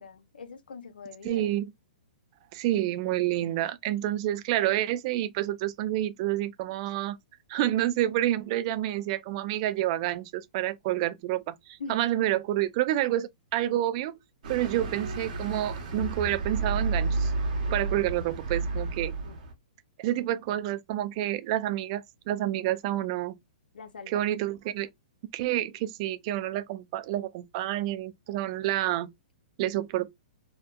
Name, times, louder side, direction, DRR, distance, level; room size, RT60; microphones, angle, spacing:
voice 1, 0.0-1.5 11.8-12.1 17.7-17.8 19.2-19.4 23.7-24.3, left 5 dB, 90° left, 0.6 m, -43 dB
voice 2, 1.2-1.7 2.5-7.2 7.5-14.2 14.5-17.3 17.7-19.1 20.0-23.4 24.1-24.9 25.3-29.1 29.6-30.1, right 13 dB, 40° right, 0.3 m, -29 dB
sound 1, 14.4-19.5, right 3 dB, 60° right, 0.8 m, -31 dB
2.6 x 2.1 x 2.3 m
hypercardioid pair, 135°, 5 cm